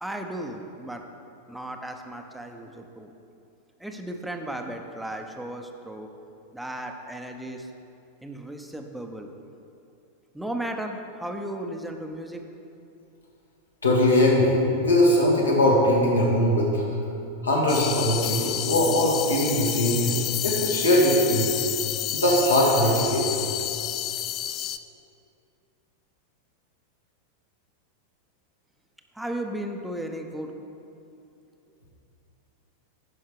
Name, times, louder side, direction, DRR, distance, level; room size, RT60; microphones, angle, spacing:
voice 1, 0.0-1.0 1.5-3.1 3.8-6.1 6.5-7.7 8.2-9.3 10.3-12.4 29.1-30.5, right 1 dB, 5° right, 4 dB, 0.7 m, -35 dB
voice 2, 13.8-16.8 17.4-20.2 20.4-21.5 22.1-23.3, left 1 dB, 75° left, -4 dB, 1.9 m, -21 dB
sound 1, 17.7-24.8, left 11 dB, 35° left, 0.3 m, -29 dB
10.0 x 5.7 x 4.8 m, 2.7 s
figure-of-eight pair, 90°, 0 cm